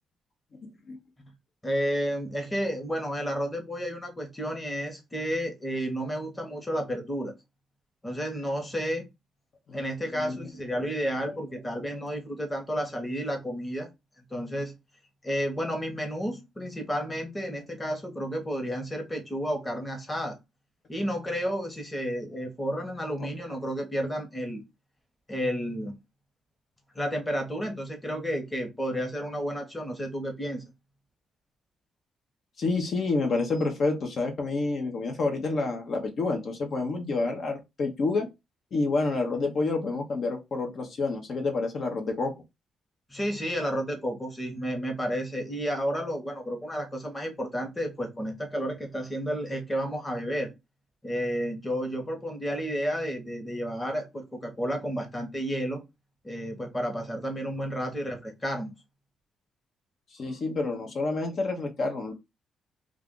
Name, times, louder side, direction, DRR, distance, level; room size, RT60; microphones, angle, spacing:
voice 1, 1.6-7.3 8.0-9.1 9.7-13.9 14.3-14.7 15.2-20.4 20.9-24.6 25.3-25.9 26.9-30.6 43.1-50.5 51.0-55.8 56.2-58.7, equal, 15° left, 1.0 m, -31 dB
voice 2, 10.1-10.5 10.7-10.9 32.6-38.3 38.7-42.3 57.6-57.7 60.1-62.1, left 3 dB, 55° left, 0.7 m, -28 dB
2.4 x 2.4 x 3.6 m
cardioid pair, 90°, 0 cm